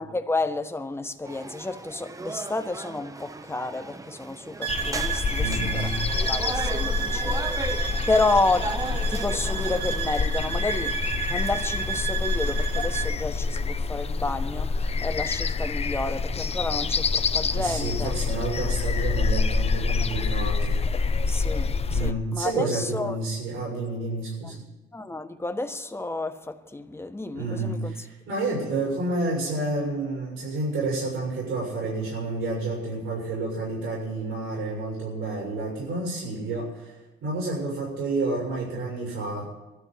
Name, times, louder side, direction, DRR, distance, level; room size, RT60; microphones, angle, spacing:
voice 1, 0.0-18.1 21.3-23.2 24.9-28.1, left 2 dB, 10° left, 1.2 m, -30 dB
sound 1, 1.2-10.2, right 3 dB, 15° right, 0.8 m, -37 dB
sound 2, 4.6-13.1, right 8 dB, 60° right, 1.9 m, -32 dB
sound 3, 4.7-22.1, left 4 dB, 30° left, 0.7 m, -27 dB
voice 2, 5.3-6.0 17.5-20.8 21.9-24.6 27.3-36.9 37.2-39.5, right 2 dB, 85° right, 6.8 m, -30 dB
23.0 x 13.0 x 4.5 m
cardioid pair, 90°, 20 cm